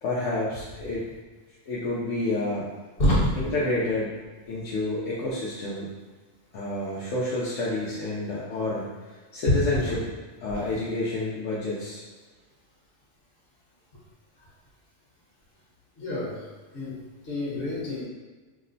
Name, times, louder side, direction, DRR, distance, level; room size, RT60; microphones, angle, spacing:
voice 1, 0.0-1.0 1.7-2.7 3.4-4.2 4.5-5.9 6.5-10.1 10.4-12.0, left 2 dB, 75° left, -6 dB, 0.9 m, -29 dB
voice 2, 16.0-16.3 16.7-16.9 17.3-18.0, equal, 50° left, -7 dB, 1.2 m, -25 dB
2.9 x 2.0 x 3.8 m, 1.3 s
omnidirectional pair, 1.3 m